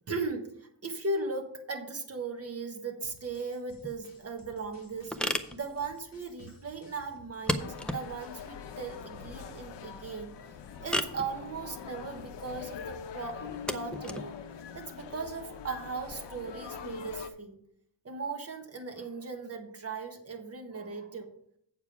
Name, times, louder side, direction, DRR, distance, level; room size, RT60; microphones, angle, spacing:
voice 1, 0.1-5.2 5.5-10.4 10.8-14.4 14.7-17.6 18.0-21.3, right 3 dB, 35° right, 4 dB, 1.5 m, -38 dB
sound 1, 3.0-8.6, left 3 dB, 50° left, 2.2 m, -59 dB
sound 2, 3.7-16.1, equal, ahead, 0.5 m, -38 dB
sound 3, 7.6-17.3, left 6 dB, 75° left, 0.9 m, -43 dB
8.1 x 7.0 x 4.8 m, 0.69 s
wide cardioid pair, 145°, 43 cm